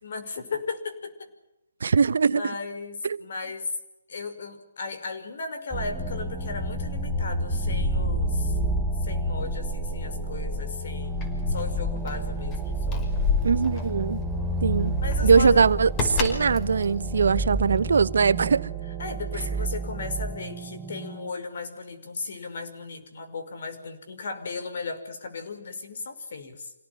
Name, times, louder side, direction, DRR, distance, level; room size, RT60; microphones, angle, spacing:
voice 1, 0.0-1.3 2.2-3.7 4.1-8.6 9.0-13.1 15.0-15.7 19.0-26.7, left 4 dB, 65° left, 5.5 m, -36 dB
voice 2, 1.8-2.4 3.0-3.2 13.4-14.2 14.6-15.0 15.2-18.7, right 5 dB, 70° right, 1.0 m, -21 dB
sound 1, 5.7-21.3, right 1 dB, 5° right, 4.1 m, -29 dB
Keys jangling, 11.0-18.0, left 6 dB, 25° left, 5.5 m, -31 dB
27.0 x 18.0 x 9.7 m
hypercardioid pair, 150°, 0 cm